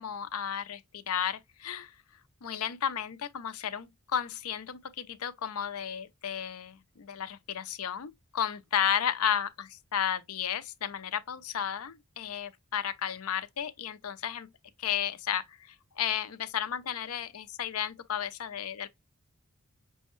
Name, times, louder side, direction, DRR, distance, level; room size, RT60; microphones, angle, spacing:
voice 1, 0.0-1.9 2.4-14.5 14.8-18.9, left 9 dB, 80° left, 0.6 m, -33 dB
6.1 x 2.2 x 3.0 m
head